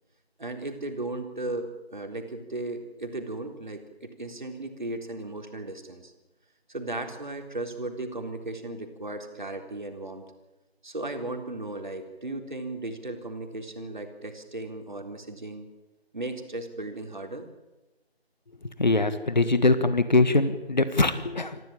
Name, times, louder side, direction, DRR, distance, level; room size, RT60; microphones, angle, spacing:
voice 1, 0.4-6.1 6.7-10.3 10.8-15.7 16.1-17.5, right 2 dB, 45° right, 4 dB, 3.7 m, -36 dB
voice 2, 18.8-21.6, left 2 dB, 45° left, 11 dB, 1.8 m, -22 dB
28.0 x 15.5 x 8.8 m, 1.1 s
figure-of-eight pair, 165°, 32 cm